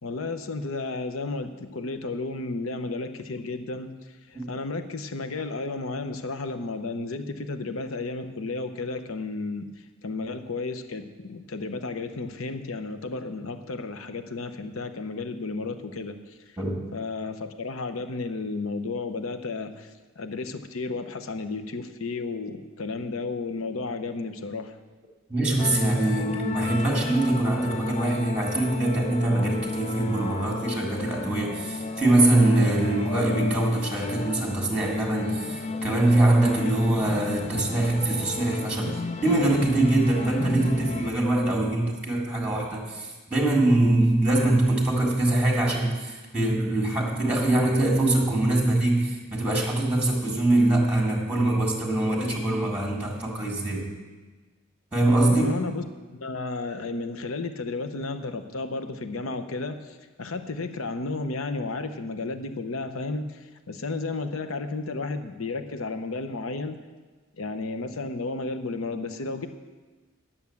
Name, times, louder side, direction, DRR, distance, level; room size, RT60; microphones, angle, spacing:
voice 1, 0.0-9.7 10.0-16.4 16.9-24.7 55.3-55.8 56.1-66.8 67.4-69.5, left 3 dB, 80° left, 9 dB, 0.8 m, -33 dB
voice 2, 25.3-53.9 54.9-55.5, right 2 dB, 5° right, -1 dB, 1.8 m, -23 dB
sound 1, 25.6-41.1, left 3 dB, 30° left, 0.5 m, -34 dB
10.5 x 7.0 x 7.1 m, 1.3 s
head